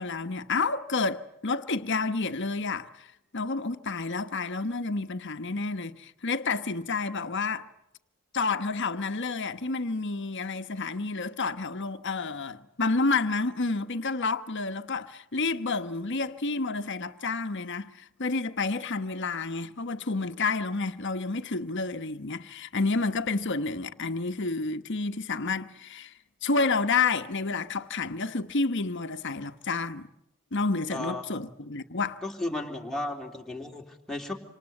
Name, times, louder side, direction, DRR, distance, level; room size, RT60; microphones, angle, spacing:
voice 1, 0.0-3.1 3.3-7.7 8.3-26.1 26.4-30.1 30.5-32.2, left 3 dB, 60° left, 1.3 m, -30 dB
voice 2, 30.9-31.2 32.2-34.3, left 1 dB, ahead, 3.4 m, -34 dB
27.0 x 26.5 x 7.8 m
head